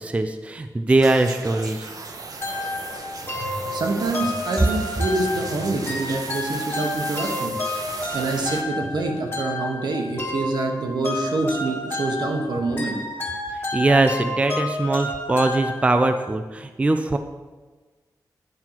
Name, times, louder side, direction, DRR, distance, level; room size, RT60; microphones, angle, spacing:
voice 1, 0.0-1.9 13.7-17.2, right 2 dB, 15° right, 7 dB, 0.4 m, -21 dB
sound 1, 0.9-8.6, right 4 dB, 60° right, 0.8 m, -36 dB
sound 2, 2.4-16.2, left 1 dB, 30° left, 1.7 m, -30 dB
voice 2, 3.4-7.6 8.1-13.0, right 2 dB, 85° right, 2 dB, 1.3 m, -26 dB
9.6 x 4.4 x 5.9 m, 1.3 s
wide cardioid pair, 175°, 7 cm